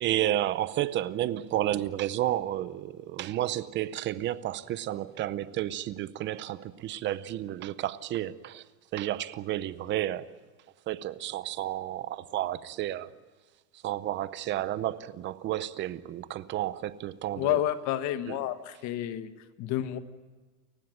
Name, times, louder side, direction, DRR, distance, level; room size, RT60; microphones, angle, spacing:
voice 1, 0.0-8.6 8.9-10.3 10.9-13.1 13.8-17.6 18.3-18.4, right 13 dB, 25° right, 0.7 m, -31 dB
voice 2, 17.4-19.3 19.6-20.0, left 12 dB, 40° left, 1.4 m, -30 dB
29.0 x 16.0 x 9.1 m
supercardioid pair, 150°, 46 cm